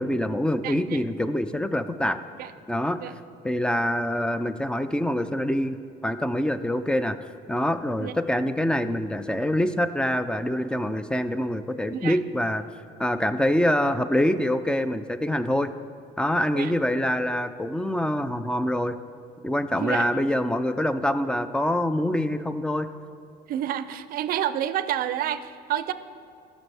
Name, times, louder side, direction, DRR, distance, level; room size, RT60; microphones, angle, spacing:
voice 1, 0.0-2.2 2.7-3.1 3.4-5.8 6.0-7.2 7.5-12.6 13.0-15.7 16.2-19.0 19.4-22.9, left 1 dB, 5° left, 11 dB, 0.3 m, -25 dB
voice 2, 0.6-1.0 2.4-2.5 3.0-3.1 8.0-8.1 11.9-12.2 16.5-16.7 19.7-20.1 23.5-25.9, right 11 dB, 60° right, 13 dB, 0.4 m, -29 dB
14.0 x 6.1 x 3.4 m, 2.4 s
cardioid pair, 110°, 17 cm